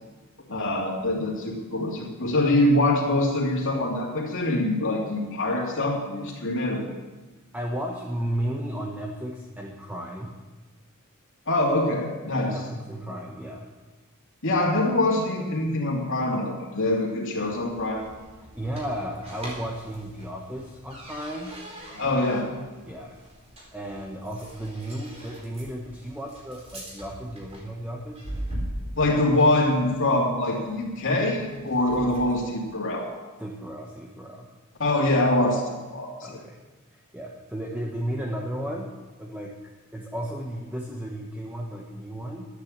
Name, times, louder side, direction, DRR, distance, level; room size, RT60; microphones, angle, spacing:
voice 1, 0.5-6.9 11.5-12.6 14.4-18.0 22.0-22.4 29.0-33.1 34.8-36.4, left 1 dB, 60° left, -2 dB, 2.6 m, -24 dB
voice 2, 7.5-10.3 12.5-13.7 18.5-21.6 22.8-23.2 23.7-28.2 33.4-34.5 36.2-36.6 36.9-38.9 39.2-39.5 39.9-42.5, right 1 dB, 10° right, -1 dB, 1.1 m, -34 dB
sound 1, 17.4-32.4, right 1 dB, 30° right, 4.1 m, -41 dB
11.5 x 9.9 x 7.4 m, 1.2 s
head